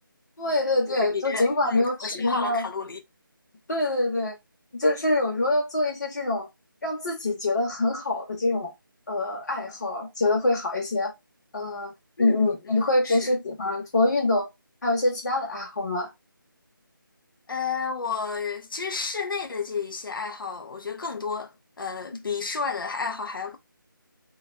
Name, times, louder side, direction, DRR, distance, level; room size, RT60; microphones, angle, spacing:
voice 1, 0.4-2.7 3.7-4.4 4.7-6.5 6.8-8.7 9.1-11.1 11.5-11.9 12.2-14.5 14.8-16.1 22.1-22.2, left 2 dB, 50° left, 0.8 m, -25 dB
voice 2, 1.1-3.0 12.2-12.4 13.0-13.2 17.5-23.6, left 5 dB, 70° left, 0.5 m, -31 dB
2.3 x 2.3 x 3.1 m
figure-of-eight pair, 165°, 12 cm